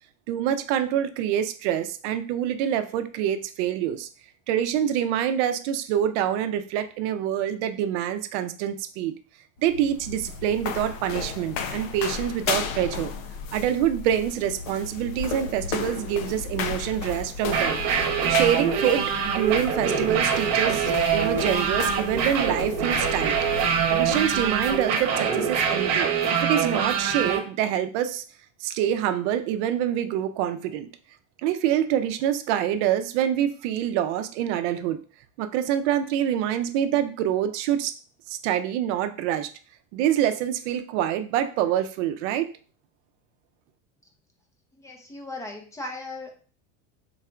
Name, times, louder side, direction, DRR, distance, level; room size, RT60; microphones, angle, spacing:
voice 1, 0.3-4.1 4.5-9.1 9.6-13.1 13.5-23.3 23.9-26.1 26.4-28.2 28.6-30.9 31.4-35.0 35.4-37.9 38.3-39.5 39.9-42.5, right 10 dB, 60° right, 10 dB, 0.6 m, -26 dB
sound 1, 9.6-24.9, left 6 dB, 75° left, 0.7 m, -34 dB
sound 2, 17.4-27.4, right 6 dB, 40° right, 0.9 m, -24 dB
voice 2, 44.7-46.4, left 2 dB, 10° left, 3 dB, 0.5 m, -37 dB
3.9 x 2.5 x 4.4 m, 0.39 s
supercardioid pair, 155°, 40 cm